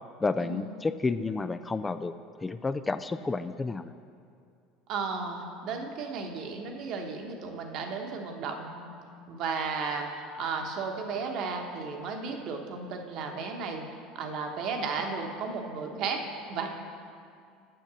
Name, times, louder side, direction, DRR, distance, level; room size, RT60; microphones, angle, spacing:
voice 1, 0.2-2.1 2.4-3.9, left 3 dB, 20° left, 11 dB, 0.3 m, -30 dB
voice 2, 4.9-8.9 9.3-13.9 14.1-16.2 16.5-16.7, right 4 dB, 60° right, 3 dB, 1.2 m, -34 dB
7.8 x 7.0 x 6.1 m, 2.3 s
hypercardioid pair, 85°, 0 cm